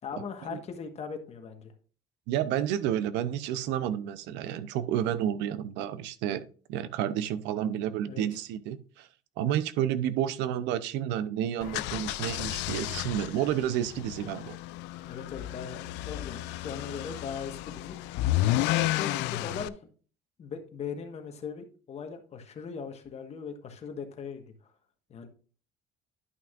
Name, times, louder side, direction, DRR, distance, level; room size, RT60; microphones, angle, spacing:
voice 1, 0.0-1.7 8.0-8.2 15.0-19.9 20.4-24.4 25.1-25.3, left 6 dB, 40° left, 5 dB, 1.4 m, -39 dB
voice 2, 2.3-9.1 9.4-14.6, right 10 dB, 90° right, 15 dB, 0.7 m, -30 dB
sound 1, 11.6-19.7, left 15 dB, 85° left, 0.4 m, -32 dB
11.0 x 5.9 x 2.5 m, 0.39 s
cardioid pair, 130°, 18 cm